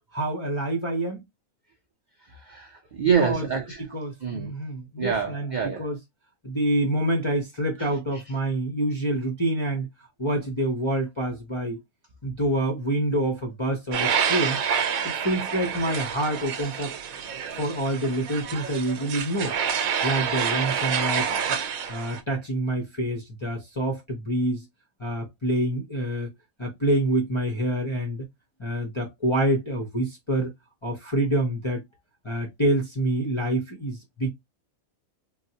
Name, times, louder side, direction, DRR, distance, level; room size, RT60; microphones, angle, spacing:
voice 1, 0.1-1.2 3.0-3.4 3.9-6.0 6.4-9.9 10.2-11.8 12.2-14.6 15.0-16.9 17.6-19.5 20.0-21.3 21.9-24.6 25.0-26.3 26.6-28.2 28.6-30.5 30.8-31.8 32.2-34.3, right 1 dB, 40° left, 0.4 m, -27 dB
voice 2, 2.3-3.8 4.2-4.5 5.0-5.9 7.8-8.2, right 7 dB, 60° right, 0.4 m, -27 dB
sound 1, 13.9-22.2, right 7 dB, 80° right, 1.1 m, -28 dB
3.8 x 2.0 x 2.7 m
omnidirectional pair, 1.5 m